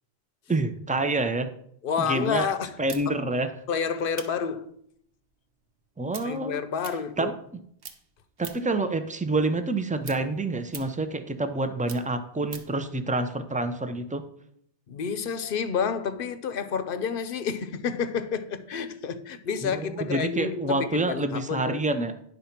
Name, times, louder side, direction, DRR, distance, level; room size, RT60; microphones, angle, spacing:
voice 1, 0.5-1.5 2.0-2.5 2.8-3.5 6.0-6.6 7.2-7.3 8.4-14.2 19.6-22.1, right 2 dB, 10° right, 0.3 m, -27 dB
voice 2, 1.8-2.8 3.1-3.2 3.7-4.7 6.2-7.3 14.9-21.8, left 6 dB, 60° left, 0.8 m, -29 dB
sound 1, 2.9-7.5 7.8-8.8 9.2-12.8, right 5 dB, 60° right, 1.1 m, -45 dB
10.5 x 4.1 x 5.8 m
omnidirectional pair, 1.1 m